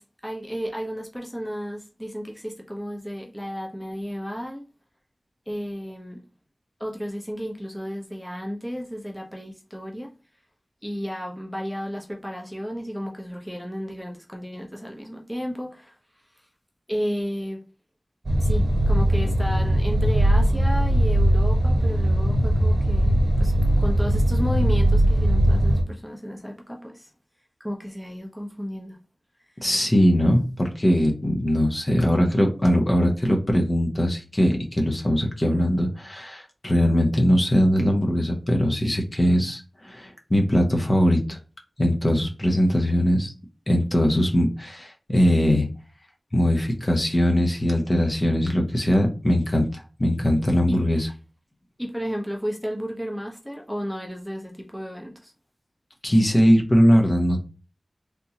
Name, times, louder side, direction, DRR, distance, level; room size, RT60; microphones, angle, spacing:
voice 1, 0.0-4.6 5.5-6.2 6.8-10.1 10.8-16.0 16.9-17.6 18.4-23.5 23.8-27.1 27.6-29.0 31.9-32.0 50.7-50.8 51.8-55.3, equal, 5° left, 0.8 m, -33 dB
sound 1, 18.2-25.8, right 1 dB, 55° right, 1.2 m, -20 dB
voice 2, 29.6-41.4 41.8-43.3 43.7-45.7 46.3-51.1 56.0-57.4, equal, 40° left, 0.9 m, -21 dB
3.5 x 2.7 x 2.9 m
wide cardioid pair, 50°, 0 cm